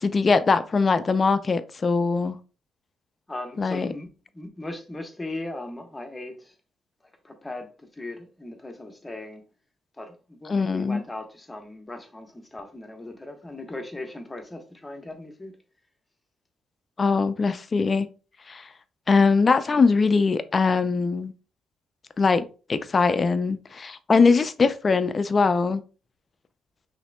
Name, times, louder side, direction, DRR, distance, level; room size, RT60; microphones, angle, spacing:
voice 1, 0.0-2.4 3.6-3.9 10.5-11.0 17.0-18.1 18.5-18.7 19.1-21.3 22.2-22.4 22.7-25.8, left 4 dB, 35° left, 0.4 m, -21 dB
voice 2, 3.3-6.5 7.2-9.4 10.0-15.6, left 2 dB, 15° left, 0.9 m, -38 dB
5.7 x 3.2 x 2.2 m
cardioid pair, 110°, 0 cm